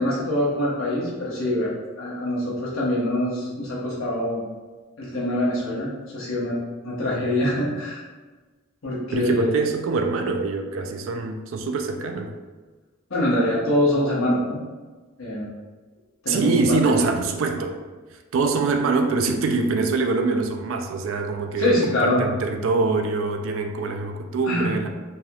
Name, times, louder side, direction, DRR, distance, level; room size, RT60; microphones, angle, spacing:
voice 1, 0.0-1.7 2.0-4.4 5.0-6.6 6.8-8.0 8.8-9.6 13.1-14.6 15.2-15.5 16.2-17.0 21.6-22.2 24.4-24.7, left 1 dB, 75° left, -6 dB, 0.9 m, -24 dB
voice 2, 9.1-12.3 16.3-17.8 18.3-24.9, right 3 dB, 70° right, 4 dB, 0.3 m, -24 dB
3.2 x 2.8 x 2.3 m, 1.3 s
head